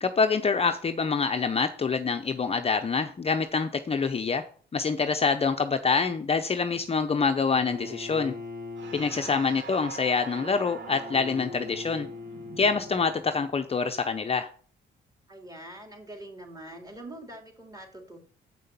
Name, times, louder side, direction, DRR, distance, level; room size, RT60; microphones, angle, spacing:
voice 1, 0.0-4.4 4.7-8.3 8.9-12.1 12.6-14.5, left 5 dB, 30° left, 6 dB, 0.7 m, -26 dB
Bowed string instrument, 7.5-13.6, left 3 dB, 45° right, 2.3 m, -42 dB
sound 1, 8.8-13.5, right 5 dB, 70° right, 1.4 m, -44 dB
voice 2, 8.9-9.5 15.3-18.2, right 1 dB, 15° right, 3 dB, 2.9 m, -44 dB
7.5 x 5.6 x 6.9 m, 0.44 s
cardioid pair, 90°, 20 cm